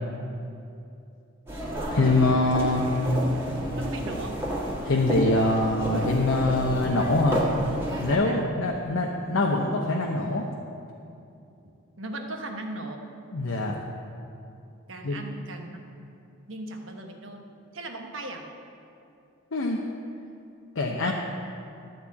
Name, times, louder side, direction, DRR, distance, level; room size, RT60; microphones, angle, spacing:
sound 1, 1.5-8.2, equal, 10° right, 1.6 m, -30 dB
voice 1, 1.9-3.1 4.8-7.4 8.0-10.5 13.3-13.8 15.0-15.2 19.5-19.8 20.8-21.1, left 2 dB, 70° left, -1 dB, 0.8 m, -24 dB
voice 2, 3.7-4.5 8.3-8.5 12.0-13.0 14.9-15.8 16.5-17.4 17.7-18.5 21.0-21.1, right 2 dB, 65° right, 3 dB, 1.1 m, -37 dB
13.0 x 4.4 x 8.4 m, 2.7 s
head